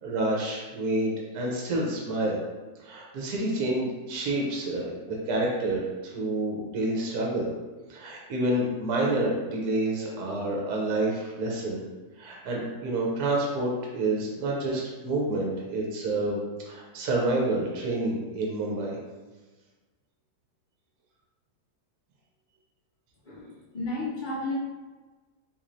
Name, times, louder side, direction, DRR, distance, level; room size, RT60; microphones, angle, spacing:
voice 1, 0.0-2.4 2.8-7.5 7.9-11.8 12.2-16.4 16.7-19.0, right 2 dB, 70° right, -3 dB, 1.2 m, -28 dB
voice 2, 23.3-24.5, left 2 dB, 90° left, -6 dB, 0.4 m, -33 dB
3.7 x 3.0 x 2.6 m, 1.3 s
omnidirectional pair, 1.8 m